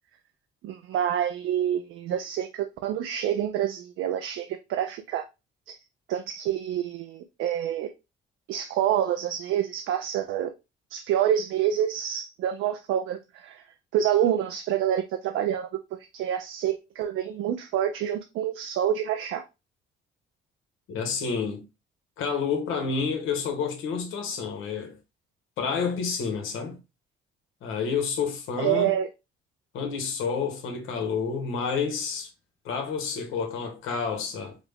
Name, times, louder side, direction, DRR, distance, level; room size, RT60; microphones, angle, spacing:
voice 1, 0.6-5.2 5.7-5.8 6.1-7.9 8.5-10.5 10.9-13.6 13.9-15.7 16.1-19.4 28.6-29.1, right 10 dB, 85° right, 0.5 m, -27 dB
voice 2, 20.9-21.6 22.2-25.0 25.6-26.8 27.6-28.9 29.7-32.3 32.6-34.6, left 5 dB, 85° left, 1.1 m, -29 dB
4.9 x 2.1 x 3.4 m
cardioid pair, 90°, 20 cm